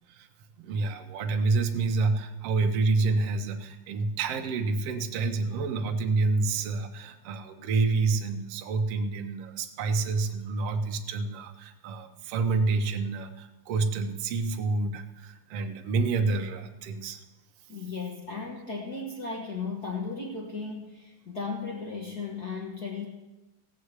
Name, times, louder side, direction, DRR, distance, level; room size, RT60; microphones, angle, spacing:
voice 1, 0.6-17.2, right 3 dB, 70° right, 4 dB, 1.5 m, -28 dB
voice 2, 17.7-23.0, left 4 dB, 55° left, -1 dB, 1.0 m, -35 dB
16.5 x 6.5 x 8.1 m, 1.0 s
omnidirectional pair, 3.9 m